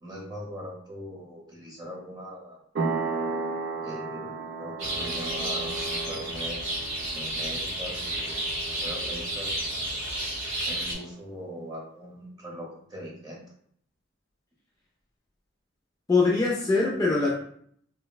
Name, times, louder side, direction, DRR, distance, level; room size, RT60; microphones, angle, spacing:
voice 1, 0.0-2.6 3.8-6.6 7.1-9.6 10.6-13.5, equal, 20° right, -3 dB, 0.7 m, -41 dB
sound 1, 2.7-11.1, right 4 dB, 55° right, 0.4 m, -35 dB
sound 2, 4.8-11.0, right 1 dB, 90° right, 1.4 m, -31 dB
voice 2, 16.1-17.3, left 3 dB, 20° left, -4 dB, 0.4 m, -22 dB
3.9 x 2.0 x 2.2 m, 0.64 s
head